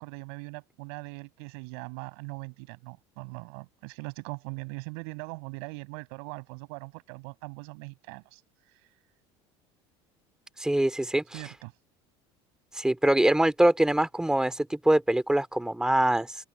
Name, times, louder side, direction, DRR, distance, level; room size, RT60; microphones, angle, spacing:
voice 1, 0.0-8.4 11.3-11.7, right 35 dB, 75° right, 7.4 m, -41 dB
voice 2, 10.6-11.4 12.7-16.3, right 1 dB, 5° right, 2.6 m, -24 dB
supercardioid pair, 95°, 14 cm